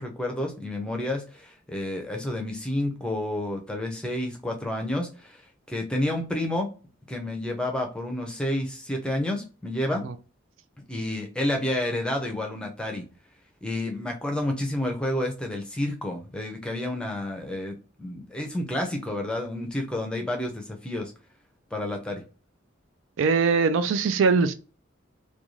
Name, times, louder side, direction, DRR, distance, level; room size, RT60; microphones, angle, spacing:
voice 1, 0.0-5.4 5.7-6.7 7.1-10.0 10.9-13.0 13.6-21.1 21.7-22.2, left 1 dB, 5° left, 0.5 m, -30 dB
voice 2, 23.2-24.5, right 4 dB, 85° right, 0.4 m, -21 dB
2.5 x 2.3 x 3.0 m
head